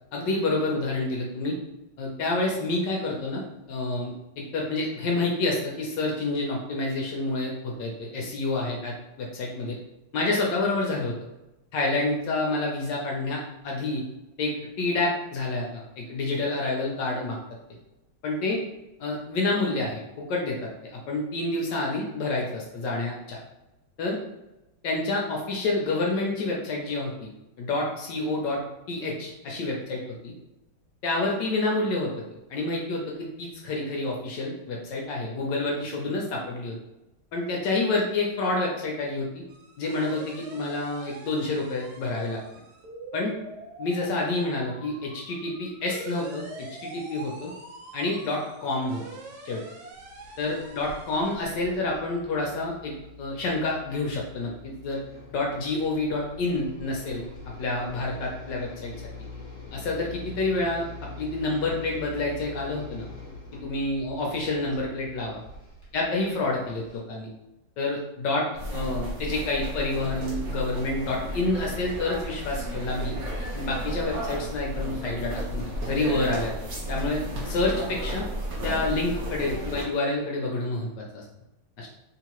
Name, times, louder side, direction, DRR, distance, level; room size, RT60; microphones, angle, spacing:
voice 1, 0.1-1.6 2.0-3.4 3.7-9.8 10.1-11.1 11.7-14.0 14.4-14.5 14.8-17.4 18.2-18.6 19.0-23.4 24.0-24.2 24.8-27.3 27.6-28.6 28.9-30.3 31.0-32.1 32.5-36.8 37.3-39.4 39.8-42.4 43.1-43.3 43.8-47.5 47.9-49.0 49.4-49.6 50.4-55.0 55.3-57.2 57.6-58.9 59.7-63.0 63.6-65.4 65.9-67.3 67.8-68.5 68.7-73.1 73.5-76.5 76.9-78.2 78.6-81.2 81.8-81.9, left 2 dB, 70° left, -1 dB, 1.1 m, -28 dB
sound 1, 39.5-51.4, right 2 dB, 80° right, 1.6 m, -44 dB
sound 2, 49.9-67.0, left 3 dB, 25° left, 1.5 m, -44 dB
sound 3, 68.5-79.8, equal, 55° right, 1.1 m, -33 dB
3.7 x 2.8 x 2.9 m, 0.96 s
omnidirectional pair, 2.3 m